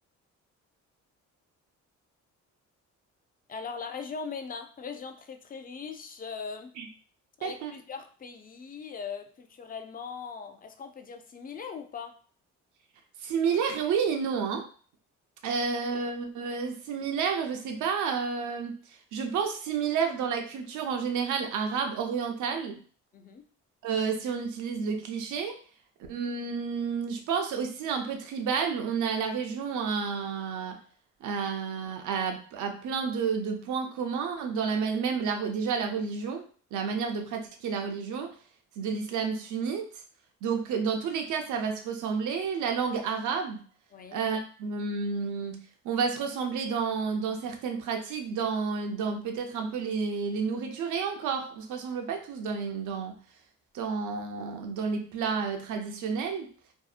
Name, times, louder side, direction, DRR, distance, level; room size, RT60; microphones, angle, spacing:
voice 1, 3.5-6.8 7.4-12.2 23.1-23.4 43.9-44.2, left 5 dB, 30° left, 7 dB, 0.4 m, -40 dB
voice 2, 7.4-7.7 13.2-14.7 15.4-22.8 23.8-25.6 26.1-30.8 31.2-38.3 38.8-39.9 40.4-43.6 44.1-45.6 45.8-53.2 53.7-56.5, right 6 dB, 75° right, 4 dB, 0.6 m, -30 dB
2.7 x 2.1 x 2.4 m, 0.42 s
cardioid pair, 90°, 30 cm